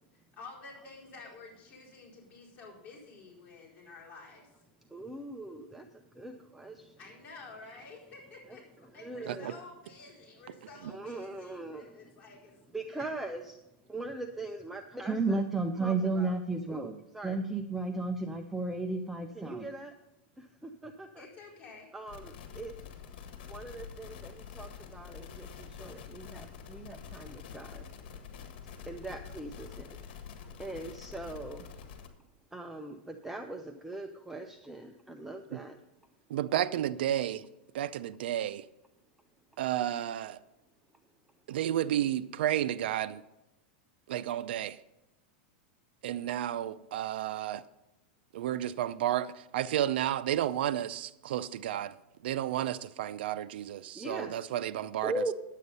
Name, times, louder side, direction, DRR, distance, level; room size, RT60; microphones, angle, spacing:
voice 1, 0.1-4.6 7.0-12.6 12.9-13.0 21.2-21.9, left 3 dB, 25° left, 4.5 m, -51 dB
voice 2, 4.9-7.0 9.0-9.6 10.9-12.0 12.7-13.6 13.9-19.9 20.4-21.3 21.9-22.7 23.5-27.8 28.8-30.0 30.6-31.7 32.5-35.8 53.9-54.3 55.0-55.3, right 3 dB, 5° right, 0.6 m, -37 dB
sound 1, 22.1-32.1, left 7 dB, 65° left, 1.6 m, -47 dB
voice 3, 36.3-37.4 37.7-38.6 39.6-40.4 41.5-43.2 44.1-44.8 46.0-47.6 48.3-51.9 52.2-55.2, right 11 dB, 75° right, 0.5 m, -32 dB
10.5 x 8.3 x 5.4 m
supercardioid pair, 145°, 6 cm